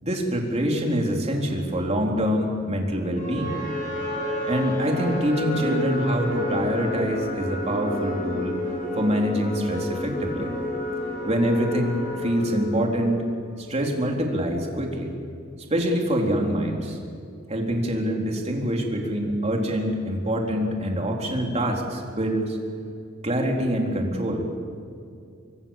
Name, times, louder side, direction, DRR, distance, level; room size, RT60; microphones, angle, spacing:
voice 1, 0.0-3.6 4.5-8.6 8.9-10.5 11.3-13.2 13.6-15.1 15.7-17.0 17.5-22.6 23.2-24.5, equal, 35° right, 1 dB, 3.8 m, -25 dB
sound 1, 3.2-13.4, left 1 dB, 40° left, 6.2 m, -30 dB
25.5 x 23.5 x 7.4 m, 2.4 s
head